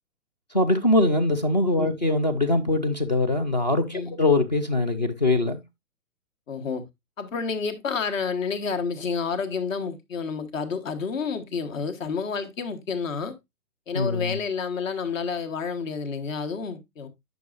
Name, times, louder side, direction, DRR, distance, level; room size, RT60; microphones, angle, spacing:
voice 1, 0.5-5.6 13.9-14.4, left 2 dB, 30° left, 0.4 m, -22 dB
voice 2, 6.5-6.9 7.2-13.4 13.9-17.1, left 5 dB, 60° left, 1.4 m, -29 dB
9.1 x 6.2 x 2.4 m
hypercardioid pair, 160°, 44 cm